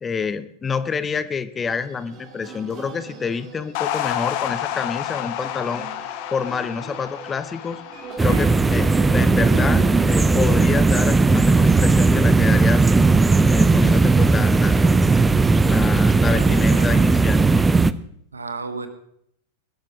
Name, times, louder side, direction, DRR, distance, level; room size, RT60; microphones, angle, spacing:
voice 1, 0.0-7.8 8.2-12.9 13.5-14.8 15.6-17.4, left 5 dB, 20° left, 14 dB, 0.8 m, -28 dB
sound 1, 1.6-12.1, right 5 dB, 35° right, 2.6 m, -39 dB
sound 2, 3.7-10.2, left 12 dB, 45° left, 1.2 m, -31 dB
sound 3, 8.2-17.9, right 3 dB, 10° right, 0.6 m, -17 dB
voice 2, 16.2-17.0 18.3-18.9, right 4 dB, 75° right, 9 dB, 1.6 m, -33 dB
22.0 x 13.0 x 3.1 m, 0.68 s
figure-of-eight pair, 90°, 0 cm